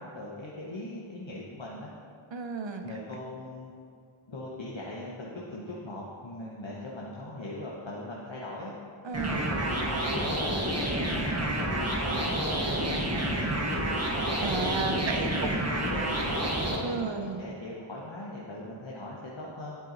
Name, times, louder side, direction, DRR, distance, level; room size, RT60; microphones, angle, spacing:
voice 1, 0.0-1.9 2.8-3.7 4.3-8.7 9.3-11.8 12.1-14.0 14.9-19.8, left 1 dB, 65° left, -5 dB, 1.0 m, -40 dB
voice 2, 2.3-2.8 9.0-9.6 14.4-15.7 16.8-17.4, right 4 dB, 65° right, 6 dB, 0.7 m, -33 dB
sound 1, 9.1-16.8, right 1 dB, 30° right, 1.2 m, -29 dB
10.5 x 4.8 x 3.9 m, 2.4 s
wide cardioid pair, 45°, 49 cm